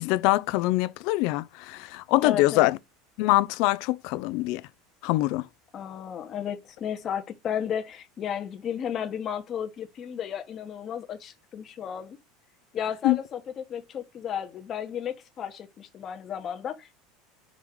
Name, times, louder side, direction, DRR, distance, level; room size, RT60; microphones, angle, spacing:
voice 1, 0.0-2.8 3.2-4.6 5.0-5.5 13.0-13.2, left 19 dB, 55° left, 0.5 m, -24 dB
voice 2, 2.2-2.7 5.7-12.2 12.7-17.0, left 8 dB, 25° left, 1.2 m, -33 dB
5.5 x 4.7 x 3.7 m
cardioid pair, 165°, 0 cm